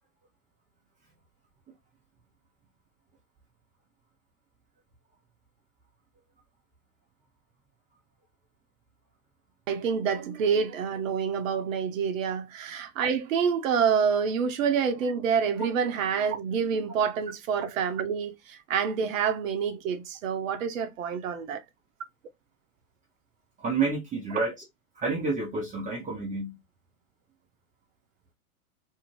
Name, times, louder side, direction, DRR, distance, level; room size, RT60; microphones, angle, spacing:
voice 1, 9.7-21.6, right 6 dB, 60° right, 0.7 m, -27 dB
voice 2, 23.6-24.6 24.9-26.6, right 4 dB, 15° right, 0.6 m, -29 dB
2.7 x 2.4 x 3.0 m
figure-of-eight pair, 100°, 45 cm